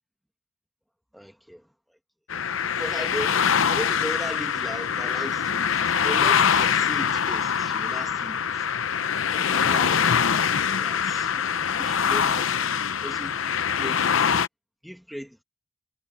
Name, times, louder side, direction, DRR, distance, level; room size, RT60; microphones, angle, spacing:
voice 1, 1.1-2.0 2.8-8.6 9.2-10.1 10.6-12.7 13.0-14.3 14.8-15.4, equal, ahead, 1.7 m, -38 dB
sound 1, 2.3-14.5, left 7 dB, 85° left, 0.7 m, -24 dB
head